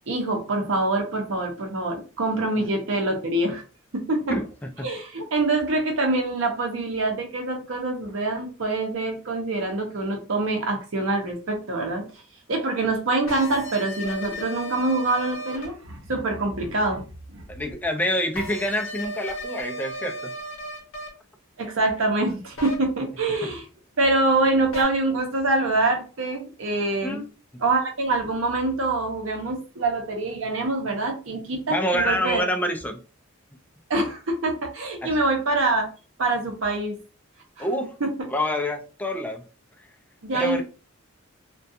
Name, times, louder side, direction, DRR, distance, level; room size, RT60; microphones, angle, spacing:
voice 1, 0.1-3.6 3.9-4.4 4.8-12.1 12.5-17.4 21.6-23.6 24.0-27.2 27.6-32.4 33.9-35.9 36.2-37.0 37.6-37.7 38.0-38.1 40.2-40.6, right 2 dB, 65° right, 0.7 m, -25 dB
voice 2, 4.3-4.9 17.5-20.3 23.4-23.5 27.0-27.3 31.7-33.0 35.0-35.2 37.6-38.0 38.3-39.4 40.3-40.6, equal, 10° left, 0.4 m, -27 dB
sound 1, 13.3-15.7 18.4-21.1 22.6-22.8 24.7-24.8, equal, 65° left, 0.7 m, -34 dB
2.4 x 2.2 x 2.6 m
head